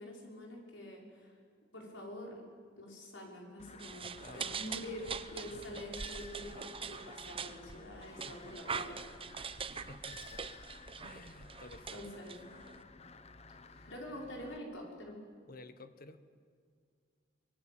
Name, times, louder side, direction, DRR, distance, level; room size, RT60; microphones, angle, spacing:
voice 1, 0.0-1.4 1.7-2.4 2.8-9.0 11.9-12.4 13.8-15.2, left 1 dB, 90° left, -1 dB, 5.9 m, -46 dB
sound 1, 3.6-14.6, left 4 dB, 35° left, 1.1 m, -55 dB
sound 2, 3.8-12.8, right 6 dB, 30° right, 0.9 m, -43 dB
voice 2, 4.2-4.6 5.5-5.8 8.1-8.5 9.7-10.4 11.0-12.0 13.7-13.9 15.5-16.2, left 2 dB, 50° left, 11 dB, 1.3 m, -54 dB
24.5 x 22.5 x 8.9 m, 2.1 s
head